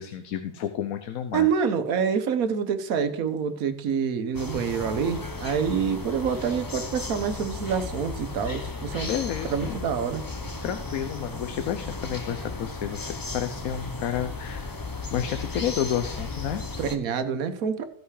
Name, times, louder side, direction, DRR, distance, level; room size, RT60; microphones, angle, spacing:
voice 1, 0.0-1.5 9.1-9.8 10.6-13.1 13.3-14.8 15.1-16.6, left 9 dB, 85° left, 9 dB, 1.2 m, -30 dB
voice 2, 1.3-9.1 9.4-10.2 16.8-17.8, right 7 dB, 85° right, 9 dB, 1.3 m, -27 dB
sound 1, 4.3-17.0, left 3 dB, 20° left, 0.6 m, -35 dB
15.0 x 5.6 x 4.8 m, 0.63 s
omnidirectional pair, 1.5 m